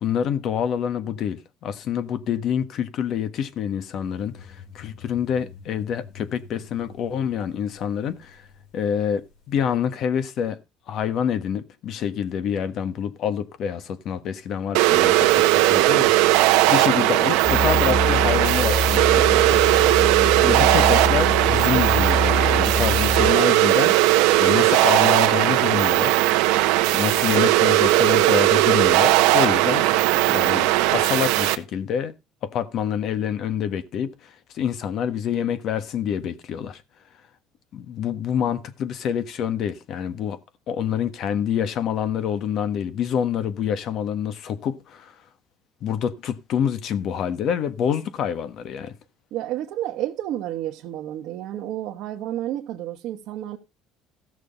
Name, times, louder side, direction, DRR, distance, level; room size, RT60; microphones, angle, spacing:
voice 1, 0.0-8.4 8.7-9.2 9.5-10.6 10.9-16.1 16.7-19.6 20.4-26.1 26.9-29.9 30.3-32.1 32.4-34.1 34.5-36.8 37.7-40.4 40.7-45.1 45.8-48.9, left 8 dB, 50° left, 1.3 m, -27 dB
sound 1, 4.0-9.5, left 7 dB, 75° left, 4.5 m, -47 dB
sound 2, 14.7-31.5, right 17 dB, 90° right, 1.1 m, -18 dB
Musical instrument, 17.4-23.3, left 2 dB, ahead, 1.6 m, -25 dB
voice 2, 49.3-53.6, right 13 dB, 65° right, 1.3 m, -30 dB
15.0 x 6.4 x 5.3 m
cardioid pair, 140°, 0 cm